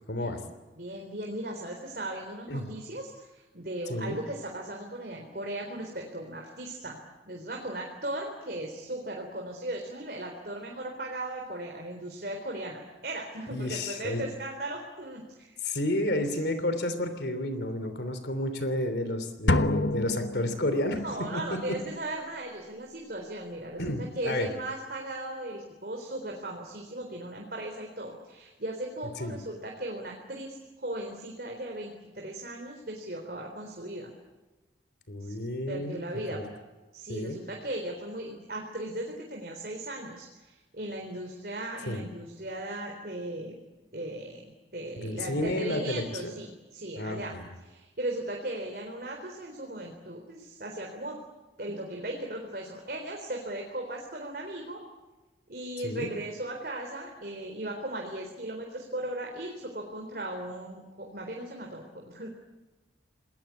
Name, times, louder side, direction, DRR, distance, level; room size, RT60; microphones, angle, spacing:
voice 1, 0.1-0.4 2.5-2.6 3.9-4.2 13.5-14.3 15.6-21.0 21.5-21.8 23.8-24.5 29.2-29.4 35.1-36.0 36.3-36.4 37.1-37.4 41.9-42.0 45.0-46.4 47.0-47.5 55.8-56.1, left 1 dB, 70° left, 10 dB, 3.1 m, -31 dB
voice 2, 0.8-7.0 7.2-15.6 21.0-34.1 35.2-35.3 35.7-36.4 36.9-43.6 43.9-47.3 47.6-51.2 51.6-54.8 55.5-62.3, right 1 dB, 55° right, 1 dB, 4.0 m, -37 dB
sound 1, 19.5-21.2, left 2 dB, 90° left, 1.3 m, -27 dB
28.5 x 20.5 x 8.6 m, 1.2 s
head